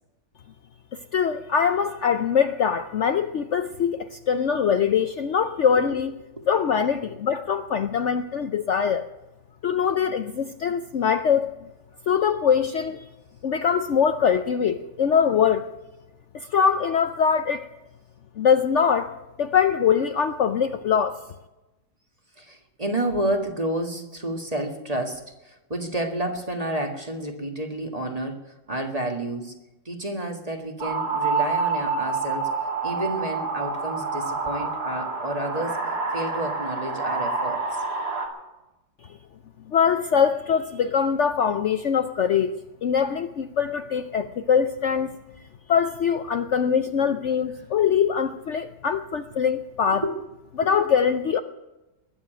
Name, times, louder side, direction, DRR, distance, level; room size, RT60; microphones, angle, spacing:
voice 1, 1.1-6.2 6.5-9.1 9.6-11.5 12.1-13.1 13.4-15.7 16.3-17.7 18.4-21.2 39.7-42.5 42.8-45.2 45.7-50.0 50.6-51.4, left 7 dB, 80° left, 0.6 m, -23 dB
voice 2, 22.4-29.5 29.8-32.5 32.8-35.8 36.1-37.8 50.0-50.1, right 1 dB, 20° right, 1.6 m, -30 dB
sound 1, 30.8-38.3, right 4 dB, 55° right, 3.0 m, -27 dB
20.5 x 7.3 x 9.0 m
omnidirectional pair, 2.1 m